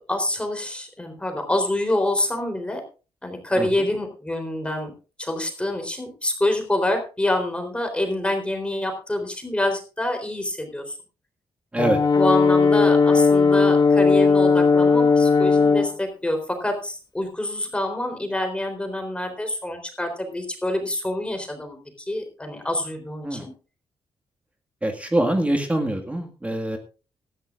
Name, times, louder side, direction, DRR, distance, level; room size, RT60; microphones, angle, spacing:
voice 1, 0.1-2.8 3.2-4.9 5.2-11.0 12.1-21.8 22.1-23.5, left 1 dB, 10° left, 5 dB, 3.9 m, -26 dB
Brass instrument, 11.8-15.9, left 4 dB, 45° left, 1.5 m, -17 dB
voice 2, 24.8-26.8, right 1 dB, 15° right, 4 dB, 1.8 m, -24 dB
18.0 x 13.5 x 2.5 m, 0.34 s
cardioid pair, 110°, 10 cm